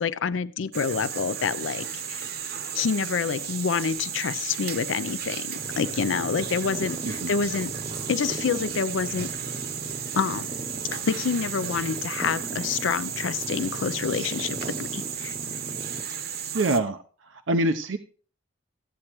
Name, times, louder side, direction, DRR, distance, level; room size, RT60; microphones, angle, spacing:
voice 1, 0.0-2.3 2.7-7.7 8.1-9.3 10.1-10.5 10.9-15.4, left 6 dB, 80° left, 0.5 m, -27 dB
sound 1, 0.7-16.8, right 8 dB, 55° right, 0.9 m, -34 dB
sound 2, 5.6-16.0, right 1 dB, 25° right, 0.7 m, -38 dB
voice 2, 16.5-17.0 17.5-18.0, right 2 dB, 85° right, 0.7 m, -24 dB
14.5 x 8.7 x 3.0 m
head